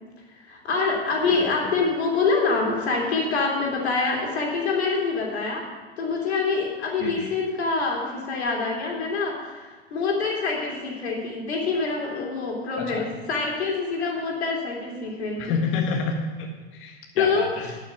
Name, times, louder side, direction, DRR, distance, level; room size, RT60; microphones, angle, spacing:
voice 1, 0.4-5.6 6.0-15.6 17.1-17.8, left 4 dB, 90° left, -1 dB, 3.0 m, -26 dB
voice 2, 7.0-7.3 12.8-13.1 15.4-16.5 16.8-17.7, left 5 dB, 40° left, 1 dB, 1.6 m, -28 dB
11.5 x 6.3 x 8.0 m, 1.3 s
hypercardioid pair, 110°, 32 cm